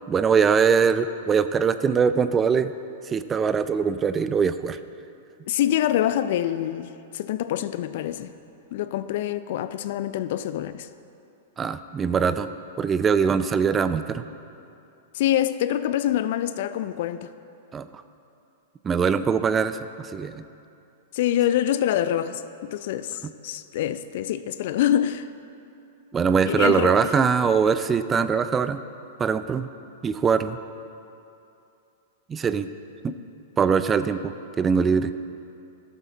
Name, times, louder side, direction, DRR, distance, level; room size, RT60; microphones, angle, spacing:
voice 1, 0.1-2.7 3.1-4.8 11.6-12.5 12.8-14.2 17.7-17.9 18.8-20.4 23.2-23.3 26.1-28.8 29.2-29.7 30.0-30.6 32.3-32.7 33.0-33.1 33.6-35.1, right 6 dB, 20° right, 0.4 m, -22 dB
voice 2, 5.5-8.3 8.7-10.9 15.1-17.3 21.1-25.3 26.4-27.1, left 11 dB, 60° left, 0.4 m, -25 dB
12.5 x 7.3 x 4.2 m
hypercardioid pair, 110°, 0 cm